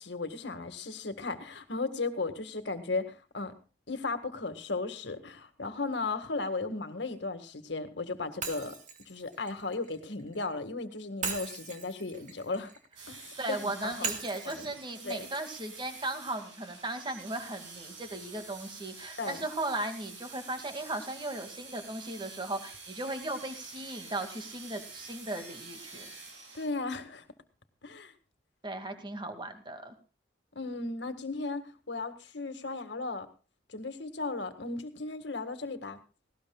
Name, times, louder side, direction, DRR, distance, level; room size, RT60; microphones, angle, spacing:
voice 1, 0.0-3.5 3.9-8.8 9.1-12.7 13.1-13.2 13.5-14.1 14.5-14.7 15.0-15.3 19.2-19.4 26.5-27.3 27.8-28.1 30.6-33.3 33.7-36.0, left 3 dB, 70° left, 9 dB, 1.8 m, -35 dB
Shatter, 8.4-10.5 11.2-13.3 14.0-16.1, right 6 dB, 40° right, 2.3 m, -40 dB
sound 1, 13.0-26.7, right 4 dB, 85° right, 7.5 m, -48 dB
voice 2, 13.4-26.1 28.6-29.9, right 2 dB, 25° right, 6 dB, 2.2 m, -37 dB
19.0 x 18.0 x 2.3 m, 0.35 s
head